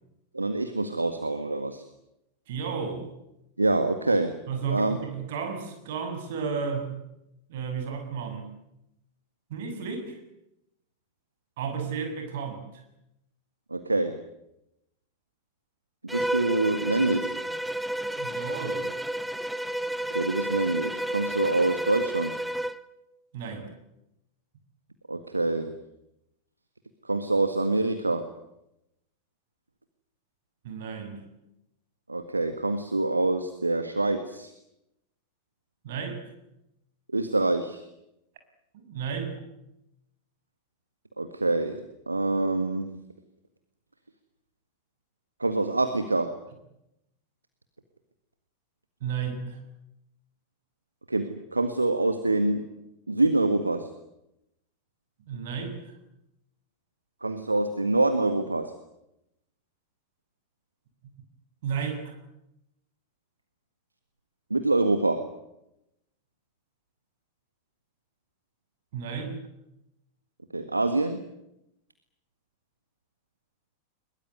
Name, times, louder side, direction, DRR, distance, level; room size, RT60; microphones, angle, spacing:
voice 1, 0.3-1.8 3.6-4.3 4.7-5.0 13.7-14.2 16.0-17.4 20.1-22.4 25.1-25.8 27.0-28.3 32.1-34.5 37.1-37.8 41.2-43.0 45.4-46.3 51.1-52.6 53.1-53.9 57.2-58.7 64.5-65.3 70.5-71.2, right 2 dB, 80° right, 9 dB, 1.7 m, -26 dB
voice 2, 2.5-3.1 4.5-6.9 7.5-8.5 9.5-10.2 11.6-12.6 18.2-18.9 23.3-23.7 30.6-31.2 35.8-36.2 38.7-39.3 49.0-49.6 55.2-55.9 61.6-62.2 68.9-69.3, right 6 dB, 55° right, 6 dB, 6.6 m, -33 dB
Bowed string instrument, 16.1-22.8, right 1 dB, 5° right, 0.9 m, -31 dB
22.0 x 22.0 x 9.5 m, 0.85 s
figure-of-eight pair, 90°, 0 cm